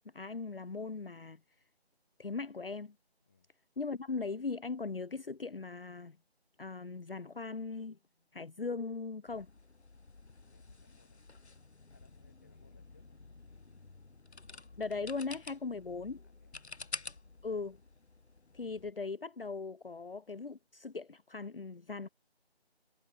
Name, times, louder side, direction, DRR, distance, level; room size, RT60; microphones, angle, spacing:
voice 1, 0.1-1.4 2.2-2.9 3.8-6.2 6.6-8.0 8.3-9.5 14.8-16.2 17.4-17.8 18.5-22.1, left 4 dB, 60° left, 0.7 m, -39 dB
sound 1, 9.3-18.9, left 3 dB, 80° left, 1.7 m, -50 dB
voice 2, 10.4-11.2 11.9-13.2 16.2-16.6, left 5 dB, 15° left, 3.5 m, -68 dB
figure-of-eight pair, 180°, 33 cm